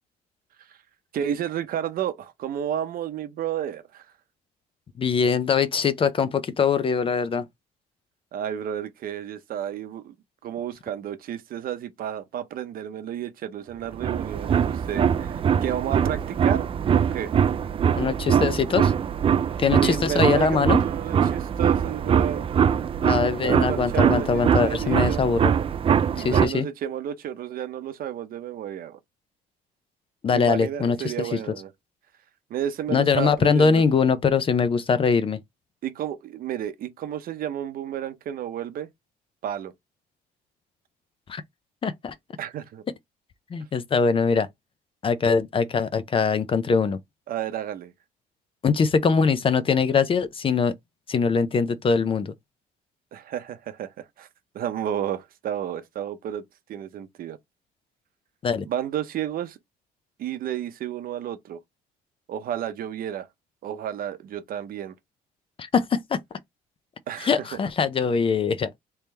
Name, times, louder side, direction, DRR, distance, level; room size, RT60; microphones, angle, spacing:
voice 1, 1.1-4.1 8.3-10.1 10.4-17.3 19.8-22.5 23.4-25.2 26.1-29.0 30.3-31.7 32.5-33.8 35.8-38.9 39.4-39.7 42.4-42.8 47.3-47.9 53.1-54.3 54.5-56.4 56.7-57.4 58.6-59.6 60.2-61.6 62.3-63.3 63.6-64.9 67.1-67.6, right 10 dB, 60° right, 0.8 m, -32 dB
voice 2, 5.0-7.5 17.9-18.9 19.6-20.8 23.0-25.5 26.2-26.7 30.2-31.4 32.9-35.4 41.3-41.4 41.8-42.1 43.5-44.5 45.0-47.0 48.6-50.7 51.1-52.3 58.4-58.7 65.6-66.2 67.2-68.8, left 5 dB, 30° left, 0.5 m, -22 dB
sound 1, 13.9-26.5, right 8 dB, 35° right, 0.4 m, -23 dB
3.5 x 2.9 x 3.2 m
cardioid pair, 110°, 17 cm